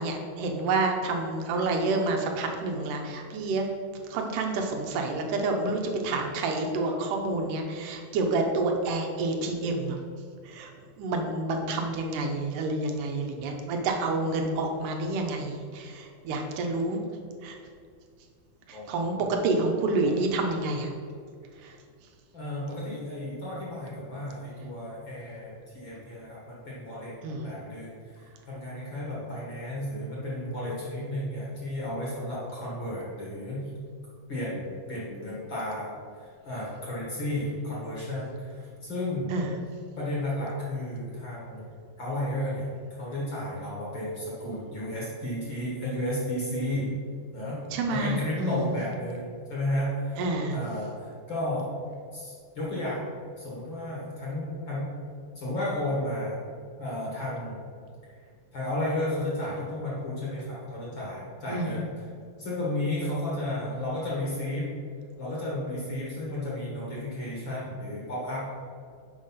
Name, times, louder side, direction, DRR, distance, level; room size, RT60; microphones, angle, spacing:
voice 1, 0.0-3.7 4.1-10.0 10.5-10.7 11.0-17.0 17.4-17.6 18.7-20.9 21.6-21.7 27.2-27.5 39.3-39.5 47.7-48.7 50.2-50.6 61.5-61.8, right 2 dB, 80° right, 2 dB, 2.3 m, -28 dB
voice 2, 18.7-19.3 22.3-33.6 34.3-35.9 36.2-39.3 40.0-41.7 42.0-42.7 43.0-46.9 47.3-47.6 47.9-50.2 50.5-51.7 52.1-53.0 53.4-54.9 55.4-56.4 56.8-57.6 58.1-58.2 58.5-62.1 62.4-64.7 65.2-68.6, left 1 dB, 45° left, -6 dB, 1.9 m, -33 dB
6.6 x 5.0 x 5.5 m, 2.2 s
omnidirectional pair, 3.7 m